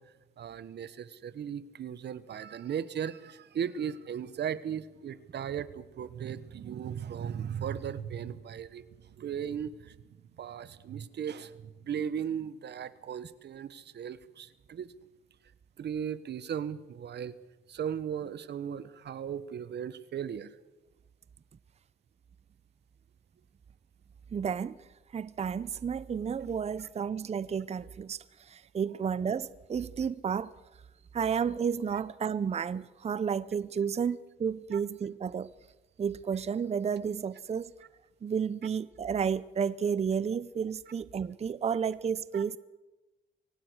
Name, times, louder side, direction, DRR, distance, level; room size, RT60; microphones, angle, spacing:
voice 1, 0.4-10.0 10.4-14.9 15.8-17.4 17.7-20.6 34.7-34.8 42.3-42.4, right 8 dB, 60° right, 1.3 m, -37 dB
voice 2, 24.3-24.8 25.1-30.5 31.1-35.5 36.0-37.7 38.2-42.6, right 7 dB, 30° right, 0.7 m, -32 dB
24.0 x 18.0 x 6.4 m
cardioid pair, 90°, 20 cm